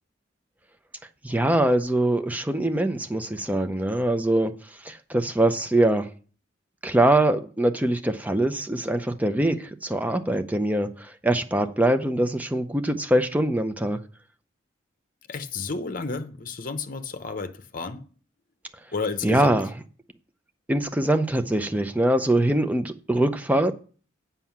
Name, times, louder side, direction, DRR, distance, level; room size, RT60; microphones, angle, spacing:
voice 1, 1.2-4.5 4.8-6.1 6.8-14.0 19.2-19.7 20.7-23.7, right 1 dB, 10° right, 0.5 m, -23 dB
voice 2, 15.3-18.0 18.9-19.7, left 4 dB, 45° left, 0.9 m, -32 dB
7.6 x 5.6 x 7.2 m
head